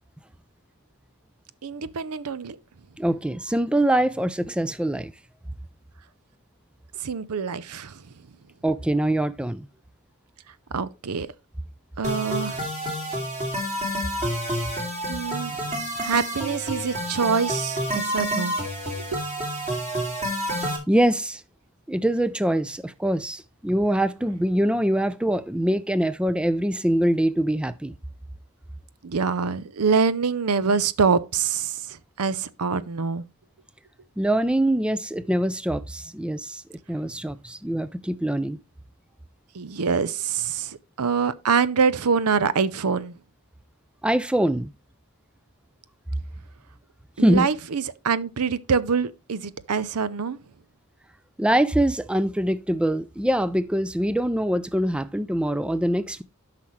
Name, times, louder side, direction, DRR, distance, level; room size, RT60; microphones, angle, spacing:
voice 1, 1.6-2.6 7.0-8.0 10.7-11.3 12.0-12.7 15.1-18.5 18.9-19.2 29.0-33.2 39.5-43.1 47.2-50.4, right 5 dB, 80° right, 0.6 m, -25 dB
voice 2, 3.0-5.1 8.6-9.7 20.9-21.4 21.9-27.9 34.2-36.6 36.9-38.6 44.0-44.7 47.2-47.5 51.4-56.2, right 1 dB, 5° right, 0.3 m, -23 dB
sound 1, 12.0-20.8, equal, 35° right, 2.7 m, -29 dB
12.0 x 5.8 x 3.2 m
head